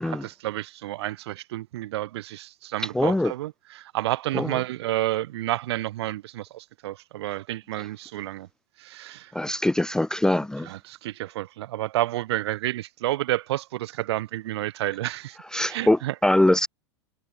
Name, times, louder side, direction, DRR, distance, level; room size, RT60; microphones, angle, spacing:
voice 1, 0.0-8.5 8.8-9.3 10.7-16.1, right 15 dB, 65° right, 2.7 m, -30 dB
voice 2, 2.9-3.3 4.3-4.6 9.3-10.7 15.5-16.7, left 1 dB, 5° left, 0.5 m, -22 dB
hypercardioid pair, 90°, 15 cm